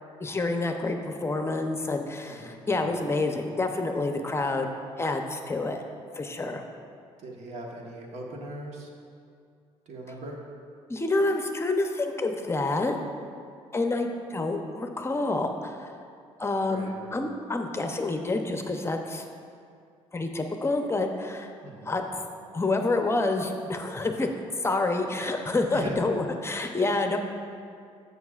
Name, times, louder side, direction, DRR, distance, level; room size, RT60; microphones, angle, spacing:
voice 1, 0.2-4.7 5.0-5.8 6.1-6.6 10.9-13.0 13.7-15.9 16.4-19.2 20.1-21.5 21.9-22.3 22.5-24.3 24.6-27.2, left 2 dB, 20° left, 4 dB, 0.6 m, -28 dB
voice 2, 2.3-2.7 7.2-8.9 9.9-10.4 16.7-17.0 21.6-22.0 25.7-26.0, right 1 dB, 70° right, 0 dB, 1.3 m, -40 dB
15.0 x 5.6 x 2.4 m, 2.4 s
cardioid pair, 90°, 12 cm